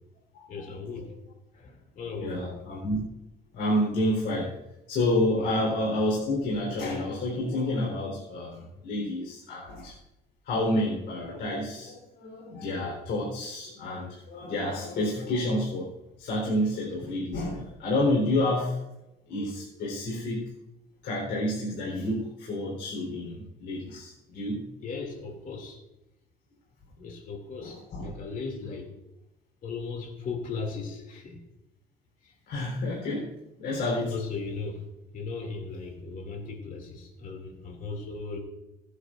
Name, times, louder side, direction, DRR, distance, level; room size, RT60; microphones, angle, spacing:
voice 1, 0.5-1.1 1.5-2.6 5.4-5.5 24.8-25.8 27.0-28.9 29.6-31.4 34.1-34.8 35.1-38.4, left 4 dB, 55° left, 3 dB, 2.7 m, -37 dB
voice 2, 2.2-3.0 3.5-4.5 4.9-9.9 10.4-15.9 16.2-18.8 19.3-20.4 21.0-24.6 27.6-28.1 32.5-33.3 33.6-34.1, left 1 dB, 70° left, -4 dB, 4.2 m, -29 dB
25.5 x 9.8 x 2.6 m, 0.96 s
cardioid pair, 110°, 17 cm